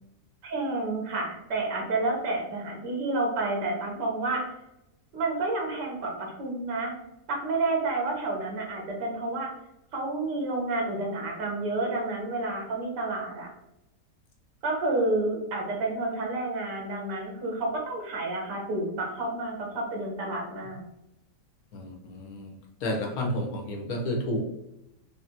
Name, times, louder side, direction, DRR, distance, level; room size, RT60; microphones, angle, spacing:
voice 1, 0.4-4.5 5.1-6.9 7.3-9.5 9.9-13.5 14.6-20.8, right 2 dB, 75° right, 0 dB, 1.7 m, -30 dB
voice 2, 21.7-22.5 22.8-24.4, left 1 dB, 65° left, 1 dB, 1.3 m, -31 dB
4.9 x 2.8 x 2.8 m, 0.87 s
omnidirectional pair, 1.9 m